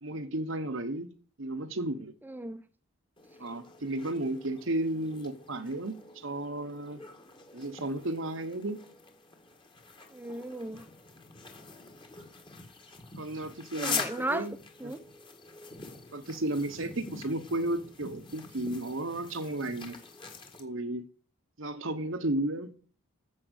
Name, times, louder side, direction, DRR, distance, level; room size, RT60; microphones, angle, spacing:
voice 1, 0.0-1.1 1.4-2.1 3.4-7.0 7.5-8.8 13.2-14.5 14.8-15.0 16.1-20.0 20.6-21.0 21.6-22.7, right 1 dB, 60° right, 1.1 m, -33 dB
voice 2, 2.2-2.6 10.1-10.8 13.8-14.5 14.8-15.0, right 1 dB, 10° right, 0.9 m, -35 dB
sound 1, 3.2-20.6, left 4 dB, 20° left, 1.8 m, -44 dB
9.9 x 7.6 x 8.2 m
head